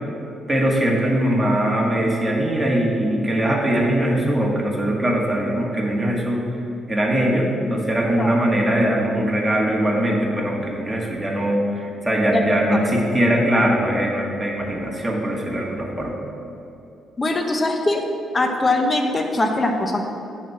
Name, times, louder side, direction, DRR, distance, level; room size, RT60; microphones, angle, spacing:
voice 1, 0.5-6.4 6.9-16.2, right 1 dB, 10° right, -2 dB, 1.8 m, -21 dB
voice 2, 17.2-18.0 18.3-20.0, left 2 dB, 25° left, 3 dB, 1.0 m, -21 dB
8.8 x 4.3 x 7.2 m, 2.8 s
cardioid pair, 90°, 0 cm